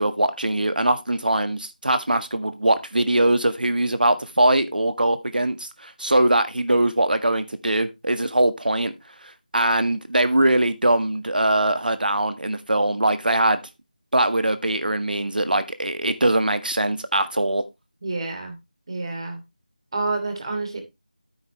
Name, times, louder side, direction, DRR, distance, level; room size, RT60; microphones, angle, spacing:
voice 1, 0.0-8.9 9.2-13.6 14.1-17.6, right 1 dB, 85° right, 1.6 m, -22 dB
voice 2, 18.0-18.6 18.9-19.4 19.9-20.8, right 3 dB, 35° right, 2.8 m, -28 dB
9.2 x 9.0 x 3.2 m
figure-of-eight pair, 170°, 5 cm